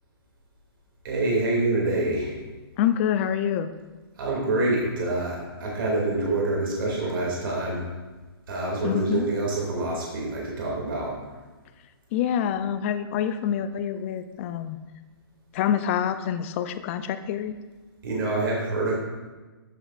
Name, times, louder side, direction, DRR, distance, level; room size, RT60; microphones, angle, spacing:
voice 1, 1.0-2.3 4.2-7.8 8.5-11.1 18.0-18.9, right 2 dB, 60° right, -3 dB, 2.4 m, -26 dB
voice 2, 2.8-3.7 8.8-9.3 12.1-14.8 15.5-17.6, left 9 dB, 30° left, 11 dB, 0.4 m, -26 dB
13.0 x 7.1 x 2.4 m, 1.3 s
hypercardioid pair, 150°, 13 cm